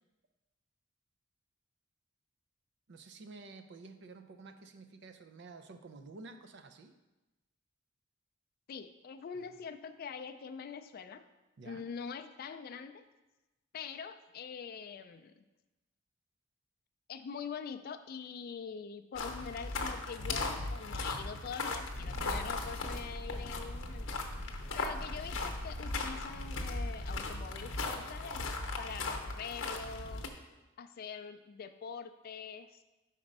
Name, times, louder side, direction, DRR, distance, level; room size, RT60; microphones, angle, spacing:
voice 1, 2.9-6.9 11.6-11.8 22.1-22.4, right 3 dB, 60° right, 8 dB, 0.5 m, -51 dB
voice 2, 8.7-11.2 11.6-13.0 13.7-15.4 17.1-24.2 24.7-30.3 30.8-32.8, left 6 dB, 50° left, 9 dB, 0.3 m, -44 dB
sound 1, 19.2-30.3, left 3 dB, 85° left, 0.8 m, -38 dB
Motor vehicle (road), 21.9-27.3, left 1 dB, 40° right, 0.9 m, -44 dB
4.9 x 4.3 x 5.3 m, 1.1 s
head